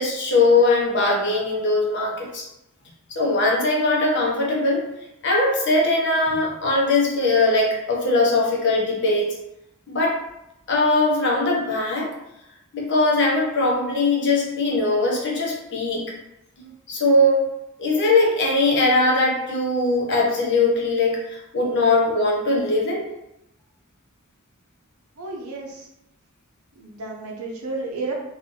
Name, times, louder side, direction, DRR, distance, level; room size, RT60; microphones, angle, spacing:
voice 1, 0.0-2.4 3.1-4.8 5.2-9.3 9.9-10.2 10.7-12.1 12.7-16.0 16.9-17.4 17.8-23.0, left 2 dB, 55° left, -2 dB, 0.8 m, -20 dB
voice 2, 25.2-25.9 26.8-28.1, right 3 dB, 85° right, -1 dB, 0.8 m, -32 dB
2.6 x 2.6 x 3.6 m, 0.86 s
head